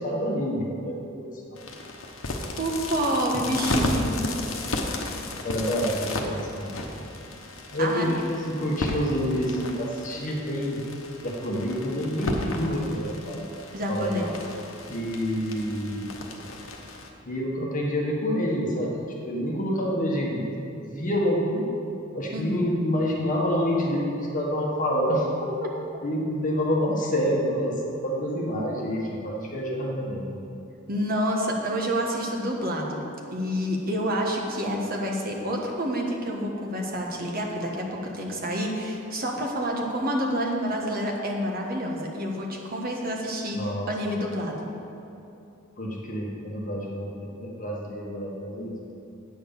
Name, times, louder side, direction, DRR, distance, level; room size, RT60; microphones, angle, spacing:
voice 1, 0.0-1.6 5.4-6.8 7.7-10.8 11.2-13.4 13.9-14.3 14.9-16.1 17.2-21.7 22.1-25.5 26.0-30.4 43.5-43.9 45.8-48.9, equal, 40° left, -2 dB, 1.4 m, -28 dB
sound 1, 1.6-17.1, left 2 dB, 70° left, 1.1 m, -34 dB
voice 2, 2.6-4.2 7.8-8.2 13.7-14.3 22.3-22.6 30.9-33.0 33.3-43.6 43.9-44.7, equal, 45° right, 0 dB, 1.4 m, -28 dB
9.1 x 6.4 x 7.1 m, 2.8 s
head